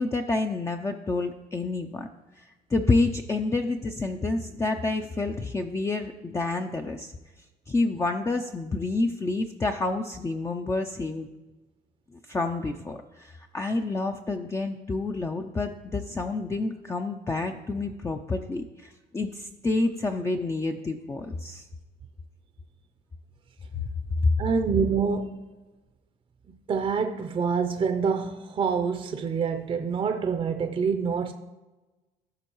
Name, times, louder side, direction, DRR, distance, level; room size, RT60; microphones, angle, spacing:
voice 1, 0.0-2.1 2.4-7.1 7.7-11.3 12.3-21.7 24.2-24.3, left 3 dB, 15° left, 4 dB, 0.4 m, -28 dB
voice 2, 24.4-25.4 26.7-31.3, right 5 dB, 35° right, 6 dB, 0.6 m, -26 dB
15.5 x 6.2 x 3.0 m, 1.1 s
cardioid pair, 110°, 17 cm